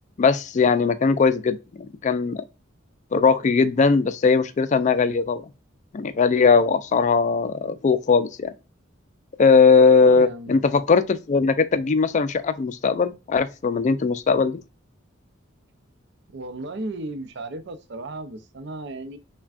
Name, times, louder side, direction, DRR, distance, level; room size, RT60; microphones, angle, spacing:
voice 1, 0.2-2.4 3.1-5.4 5.9-8.5 9.4-14.6, left 5 dB, 35° left, 0.3 m, -19 dB
voice 2, 10.0-10.5 16.3-19.2, right 2 dB, 60° right, 0.6 m, -35 dB
5.8 x 2.2 x 2.4 m
head